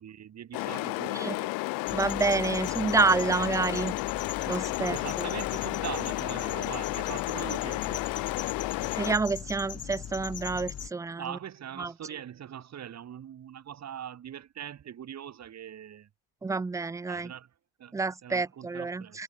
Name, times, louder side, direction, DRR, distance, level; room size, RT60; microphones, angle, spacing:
voice 1, 0.0-1.5 4.9-8.1 11.2-16.1 17.1-17.5 17.8-19.2, right 9 dB, 45° right, 6.8 m, -41 dB
sound 1, 0.5-9.2, left 24 dB, 65° left, 0.6 m, -32 dB
sound 2, 1.9-10.9, left 9 dB, 40° left, 3.1 m, -40 dB
voice 2, 1.9-4.0 4.5-5.3 8.9-11.4 11.8-11.9 16.4-17.3 17.9-19.2, right 4 dB, 10° right, 0.4 m, -28 dB
supercardioid pair, 85°, 36 cm